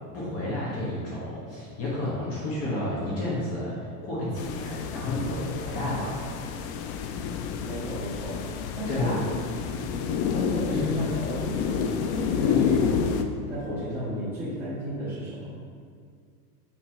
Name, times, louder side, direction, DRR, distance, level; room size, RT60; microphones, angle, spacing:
voice 1, 0.1-3.8 4.0-6.2 8.9-9.2 10.7-11.1 12.5-12.8, left 1 dB, 30° left, -7 dB, 1.3 m, -31 dB
sound 1, 4.4-13.2, left 7 dB, 50° left, 0.5 m, -29 dB
voice 2, 7.6-8.4 8.7-9.2 10.3-13.1 13.5-15.5, equal, 5° right, -13 dB, 1.5 m, -33 dB
6.0 x 3.3 x 5.6 m, 2.2 s
supercardioid pair, 150°, 46 cm